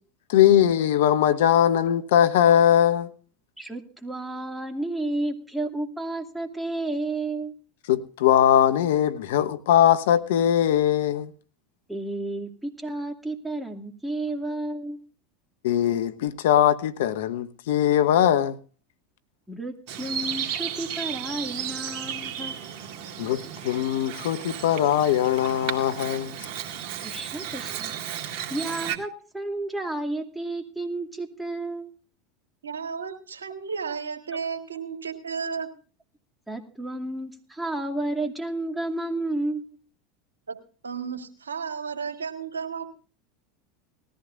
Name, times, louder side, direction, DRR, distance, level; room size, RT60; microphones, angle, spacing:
voice 1, 0.3-3.1 7.9-11.3 15.6-18.6 23.2-26.3, left 10 dB, 70° left, 0.9 m, -21 dB
voice 2, 3.6-7.5 11.9-15.0 19.5-22.6 27.0-27.9 28.5-31.9 36.5-39.8, right 2 dB, 5° right, 2.5 m, -31 dB
Bird vocalization bird call bird song, 19.9-29.0, right 9 dB, 55° right, 2.1 m, -34 dB
voice 3, 32.6-35.7 40.5-40.6 40.8-42.9, right 6 dB, 90° right, 1.6 m, -33 dB
19.0 x 14.0 x 2.6 m
hypercardioid pair, 85°, 0 cm